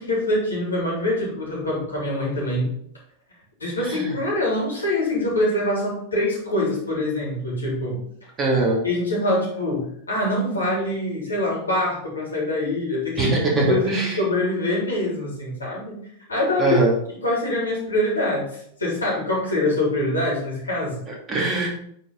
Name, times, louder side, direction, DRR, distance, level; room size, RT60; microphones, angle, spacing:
voice 1, 0.0-2.7 3.6-8.0 8.8-13.4 13.6-16.0 16.3-16.8 17.1-21.0, left 1 dB, 80° left, -4 dB, 3.3 m, -24 dB
voice 2, 8.4-8.8 13.2-14.1 16.6-16.9 21.3-21.7, right 3 dB, 25° right, -2 dB, 2.6 m, -21 dB
9.4 x 4.5 x 4.0 m, 0.68 s
figure-of-eight pair, 90°, 0 cm